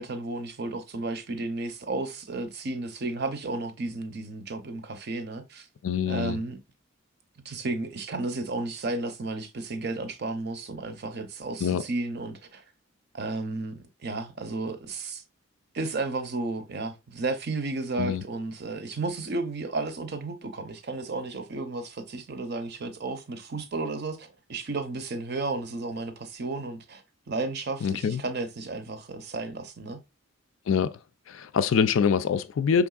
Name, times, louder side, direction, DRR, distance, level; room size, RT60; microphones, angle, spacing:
voice 1, 0.0-5.7 6.1-6.6 7.4-12.6 13.1-15.2 15.7-30.0, right 2 dB, 50° right, 0.6 m, -33 dB
voice 2, 5.8-6.4 11.6-11.8 18.0-18.2 27.8-28.2 30.7-30.9 31.3-32.9, left 6 dB, 70° left, 0.4 m, -25 dB
4.8 x 3.5 x 2.3 m
head